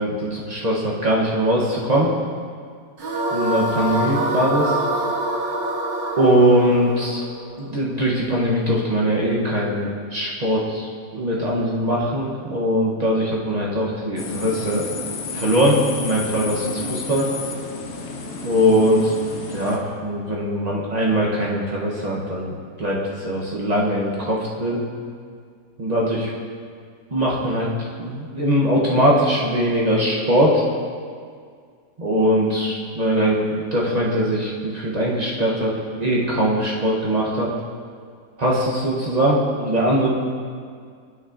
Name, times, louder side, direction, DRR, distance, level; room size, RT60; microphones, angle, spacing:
voice 1, 0.0-2.1 3.3-4.8 6.2-7.2 7.6-14.8 15.3-17.3 18.4-19.1 19.5-24.8 25.8-26.3 27.1-27.7 28.0-30.6 32.0-35.7 36.0-37.5 38.4-40.1, equal, 50° right, -4 dB, 0.4 m, -21 dB
sound 1, 3.0-8.2, right 1 dB, 75° right, 1.8 m, -25 dB
sound 2, 14.2-19.8, left 4 dB, 75° left, 0.6 m, -31 dB
13.0 x 5.7 x 2.5 m, 2.1 s
omnidirectional pair, 2.0 m